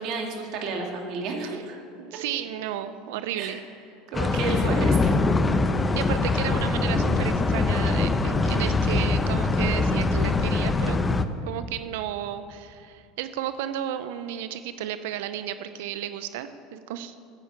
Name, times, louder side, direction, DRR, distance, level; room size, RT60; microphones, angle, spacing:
voice 1, 0.0-1.8 3.4-3.6 4.1-5.1, right 4 dB, 60° right, 1 dB, 2.2 m, -31 dB
voice 2, 2.0-3.6 4.3-4.5 6.0-11.0 11.5-17.2, right 11 dB, 75° right, 11 dB, 0.5 m, -33 dB
sound 1, 4.1-11.2, left 3 dB, 20° left, 0.7 m, -23 dB
9.2 x 9.1 x 8.4 m, 2.7 s
hypercardioid pair, 85°, 0 cm